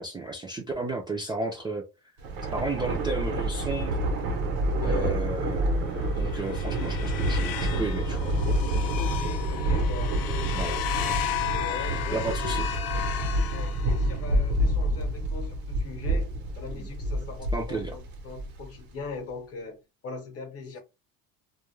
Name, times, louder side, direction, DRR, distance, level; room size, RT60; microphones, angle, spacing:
voice 1, 0.0-1.9 2.5-4.0 4.8-8.3 10.5-10.8 12.1-12.7 16.7-16.9 17.5-17.9, right 3 dB, 15° right, 0.3 m, -33 dB
Thunder, 2.2-18.8, right 1 dB, 90° right, 0.9 m, -28 dB
voice 2, 4.7-5.3 9.0-10.9 11.5-12.6 13.3-20.8, left 4 dB, 40° left, 0.8 m, -40 dB
sound 1, 6.0-14.3, left 11 dB, 80° left, 0.6 m, -34 dB
2.3 x 2.1 x 3.0 m
cardioid pair, 140°, 36 cm